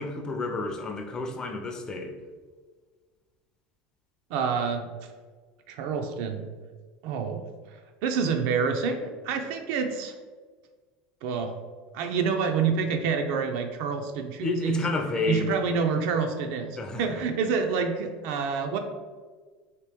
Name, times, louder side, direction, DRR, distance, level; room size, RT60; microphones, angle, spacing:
voice 1, 0.0-2.2 14.4-15.6 16.8-17.0, left 3 dB, 20° left, 3 dB, 0.4 m, -30 dB
voice 2, 4.3-4.9 5.7-6.4 7.0-7.4 8.0-10.1 11.2-11.6 11.9-14.8 15.3-18.8, right 5 dB, 65° right, 6 dB, 0.4 m, -27 dB
2.9 x 2.8 x 3.4 m, 1.4 s
cardioid pair, 145°, 4 cm